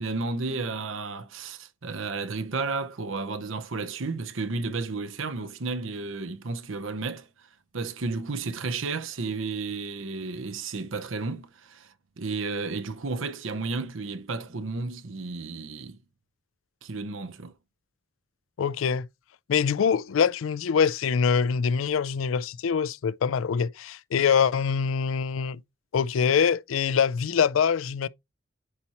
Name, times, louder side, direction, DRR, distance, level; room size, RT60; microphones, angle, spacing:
voice 1, 0.0-7.3 7.7-16.0 16.8-17.5, right 3 dB, 80° right, 0.8 m, -32 dB
voice 2, 18.6-19.1 19.5-25.6 25.9-28.1, left 6 dB, 85° left, 0.4 m, -24 dB
9.7 x 4.2 x 3.0 m
head